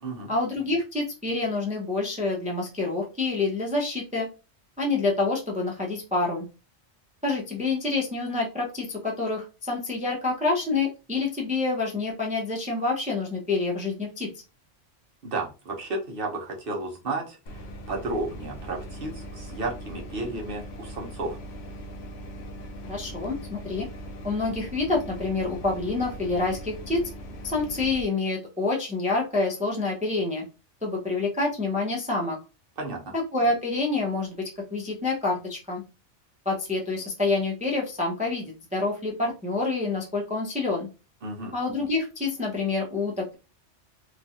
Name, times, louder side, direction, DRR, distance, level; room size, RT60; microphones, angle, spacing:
voice 1, 0.3-4.3 4.8-6.5 7.2-14.3 22.9-23.9 24.2-27.0 27.4-30.4 30.8-32.4 33.1-35.8 36.5-40.9 41.5-43.4, left 3 dB, 10° right, -1 dB, 0.4 m, -27 dB
voice 2, 15.2-21.4 32.8-33.1 41.2-41.5, right 2 dB, 55° right, -1 dB, 0.9 m, -33 dB
sound 1, 17.5-28.0, right 1 dB, 65° left, 0.8 m, -40 dB
3.0 x 2.3 x 2.7 m, 0.31 s
omnidirectional pair, 1.2 m